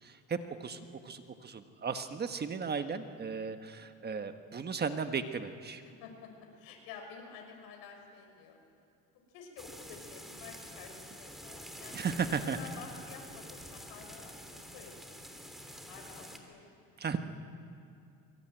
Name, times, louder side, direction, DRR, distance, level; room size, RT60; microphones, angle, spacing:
voice 1, 0.0-5.8 11.9-12.6 17.0-17.2, right 5 dB, 30° right, 8 dB, 1.4 m, -36 dB
voice 2, 5.8-8.6 9.1-12.2 12.6-14.3 14.7-16.7 17.0-17.2, left 5 dB, 80° left, 3 dB, 6.1 m, -51 dB
sound 1, 9.6-16.4, equal, ahead, 3.2 m, -48 dB
23.5 x 23.5 x 9.1 m, 2.5 s
cardioid pair, 115°, 34 cm